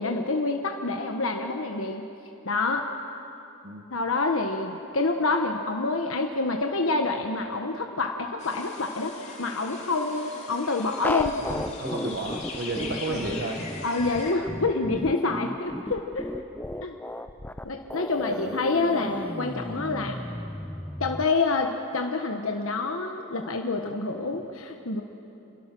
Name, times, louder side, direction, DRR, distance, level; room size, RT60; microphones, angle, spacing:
voice 1, 0.0-2.1 2.4-2.9 3.9-11.4 13.1-13.3 13.8-16.3 16.8-17.0 17.6-20.2 21.0-25.0, left 3 dB, 70° left, 3 dB, 1.2 m, -27 dB
sound 1, 8.4-14.3, left 3 dB, 30° left, 2.8 m, -40 dB
sound 2, 11.0-21.2, left 1 dB, 10° left, 0.5 m, -34 dB
voice 2, 11.3-13.6 18.2-18.6, right 2 dB, 50° right, 3 dB, 1.4 m, -33 dB
28.5 x 22.5 x 6.1 m, 2.8 s
head